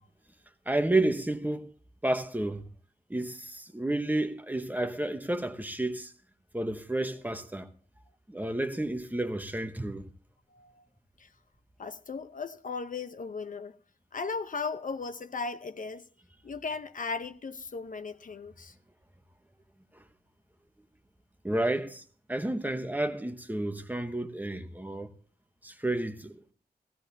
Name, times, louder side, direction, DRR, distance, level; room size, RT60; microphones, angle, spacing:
voice 1, 0.7-1.7 2.0-2.6 3.1-6.1 6.5-7.7 8.3-10.1 21.4-22.0 22.3-25.1 25.6-26.4, right 1 dB, 10° right, 1.0 m, -31 dB
voice 2, 10.5-10.8 11.2-11.3 11.8-13.8 14.1-16.0 16.4-18.7, left 4 dB, 50° left, 0.8 m, -37 dB
16.5 x 16.0 x 2.7 m
wide cardioid pair, 115°, 17 cm